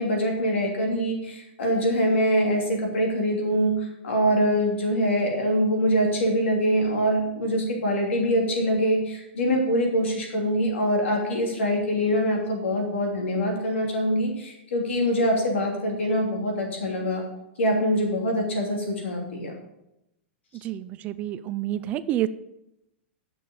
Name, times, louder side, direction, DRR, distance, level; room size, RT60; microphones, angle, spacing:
voice 1, 0.0-3.7 4.0-17.2 17.6-19.6, equal, 90° left, 1 dB, 2.9 m, -24 dB
voice 2, 20.6-22.3, right 13 dB, 25° right, 14 dB, 0.3 m, -28 dB
7.2 x 6.0 x 6.8 m, 0.87 s
supercardioid pair, 160°, 6 cm